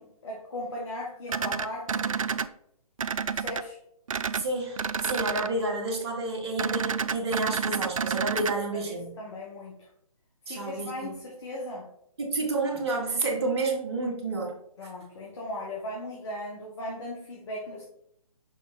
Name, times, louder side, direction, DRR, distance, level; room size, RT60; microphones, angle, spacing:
voice 1, 0.0-2.1 3.3-3.8 8.7-9.7 10.5-11.8 14.8-17.8, left 1 dB, 50° left, -3 dB, 1.6 m, -37 dB
sound 1, 1.3-2.5 3.0-3.6 4.1-4.4 4.8-5.5 6.6-8.5, right 6 dB, 65° right, 0.4 m, -29 dB
voice 2, 4.3-9.1 10.5-11.1 12.2-14.6 14.8-14.9, right 2 dB, 45° right, 0 dB, 1.6 m, -30 dB
6.1 x 3.7 x 4.2 m, 0.72 s
figure-of-eight pair, 140°, 19 cm